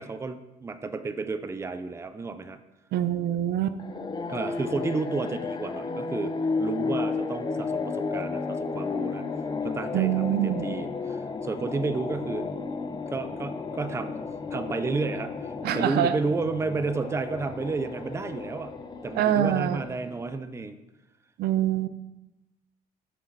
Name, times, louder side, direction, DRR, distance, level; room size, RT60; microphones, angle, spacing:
voice 1, 0.0-2.6 4.3-9.3 9.6-12.5 13.1-14.2 14.5-18.7 19.0-20.8, right 4 dB, 15° right, 10 dB, 0.5 m, -31 dB
voice 2, 2.9-3.8 9.9-10.6 15.6-16.1 19.1-19.8 21.4-21.9, right 11 dB, 70° right, 12 dB, 0.6 m, -25 dB
sound 1, 3.8-20.4, left 4 dB, 25° left, 0.7 m, -33 dB
7.4 x 6.5 x 4.0 m, 0.98 s
cardioid pair, 110°, 17 cm